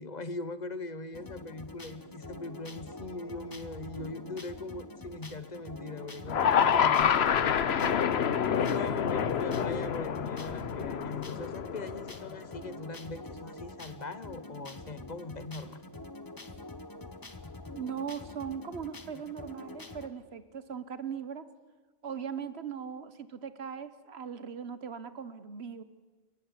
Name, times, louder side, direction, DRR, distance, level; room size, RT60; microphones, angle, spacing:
voice 1, 0.0-7.3 8.5-15.8, left 3 dB, 45° left, 14 dB, 1.1 m, -40 dB
sound 1, 1.1-20.1, left 2 dB, 20° left, 1.1 m, -46 dB
sound 2, 6.3-12.5, left 8 dB, 80° left, 1.1 m, -27 dB
voice 2, 17.7-21.5 22.0-25.8, right 7 dB, 80° right, 13 dB, 1.4 m, -39 dB
28.5 x 14.5 x 9.7 m, 1.4 s
omnidirectional pair, 1.1 m